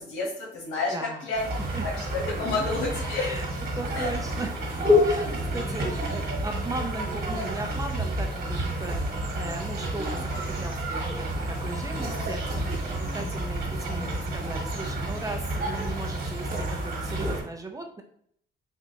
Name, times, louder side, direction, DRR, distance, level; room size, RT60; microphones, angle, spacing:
voice 1, 0.0-1.5 1.8-3.3 3.9-4.1 5.4-5.6 13.9-14.6, left 3 dB, 90° left, -2 dB, 1.3 m, -31 dB
voice 2, 0.9-1.2 1.7-1.9 3.1-3.5 3.7-4.5 5.0-5.3 5.5-9.0 9.3-12.4 12.8-18.0, right 2 dB, 15° right, 3 dB, 0.6 m, -37 dB
sound 1, 1.3-17.4, equal, 50° right, 1.4 m, -29 dB
4.3 x 2.4 x 2.8 m, 0.65 s
cardioid pair, 90°, 20 cm